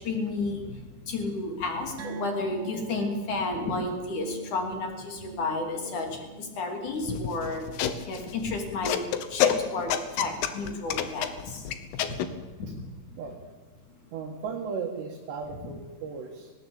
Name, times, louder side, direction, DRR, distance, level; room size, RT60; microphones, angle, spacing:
voice 1, 0.0-9.0 9.3-11.7 12.0-12.2 12.7-12.8 13.1-13.2, left 3 dB, 45° left, 4 dB, 3.9 m, -32 dB
sound 1, 2.0-8.8 9.1-9.3 9.7-9.8, right 3 dB, 45° right, 3.1 m, -43 dB
sound 2, 7.1-12.3, left 9 dB, 70° left, 2.8 m, -29 dB
voice 2, 14.1-16.5, right 5 dB, 65° right, 1 dB, 3.7 m, -36 dB
19.0 x 18.0 x 8.5 m, 1.2 s
omnidirectional pair, 5.5 m